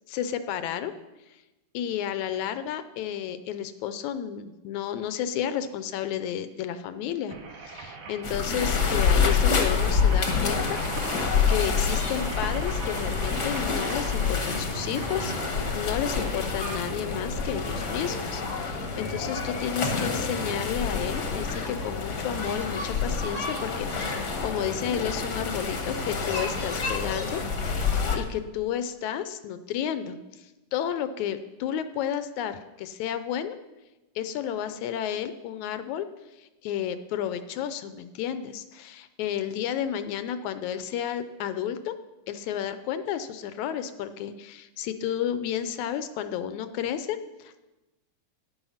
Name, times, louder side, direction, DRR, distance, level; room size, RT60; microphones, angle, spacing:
voice 1, 0.1-0.9 1.7-7.4 7.6-10.8 11.1-27.4 27.9-33.6 34.2-36.1 36.4-42.0 42.3-47.6, left 9 dB, 75° left, 11 dB, 1.9 m, -32 dB
sound 1, 7.3-18.4 19.0-19.1 19.3-19.4, right 4 dB, 75° right, 2.9 m, -41 dB
sound 2, 8.2-28.2, left 5 dB, 45° left, 1.5 m, -27 dB
sound 3, 14.1-19.5, left 1 dB, 35° right, 1.7 m, -43 dB
12.5 x 10.0 x 5.7 m, 1.1 s
omnidirectional pair, 3.6 m